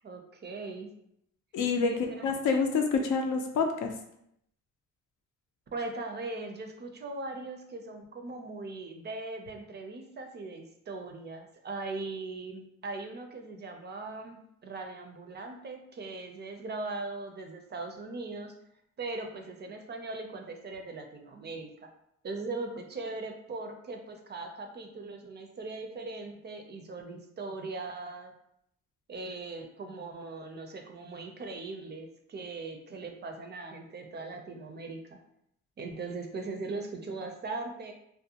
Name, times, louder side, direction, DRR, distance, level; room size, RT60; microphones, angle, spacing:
voice 1, 0.0-0.9 1.8-2.2 5.7-18.5 19.0-21.9 22.2-28.3 29.1-35.2 35.8-37.9, right 3 dB, 35° right, 4 dB, 0.4 m, -39 dB
voice 2, 1.5-1.9 2.2-3.9, left 5 dB, 80° left, 4 dB, 0.5 m, -27 dB
2.5 x 2.1 x 2.7 m, 0.74 s
cardioid pair, 90°, 30 cm